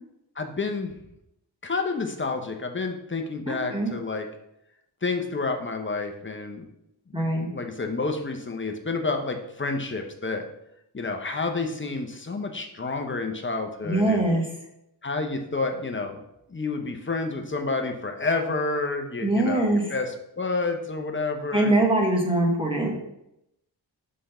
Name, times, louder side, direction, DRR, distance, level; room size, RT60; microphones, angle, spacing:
voice 1, 0.4-0.9 1.6-4.3 5.0-6.7 7.1-10.4 10.9-14.3 15.0-16.2 16.5-21.8, left 3 dB, 25° left, 4 dB, 0.8 m, -29 dB
voice 2, 3.5-3.9 7.1-7.5 13.8-14.4 19.2-19.9 21.5-23.0, right 1 dB, 10° right, -1 dB, 1.2 m, -23 dB
5.0 x 3.8 x 5.5 m, 0.81 s
wide cardioid pair, 95°, 43 cm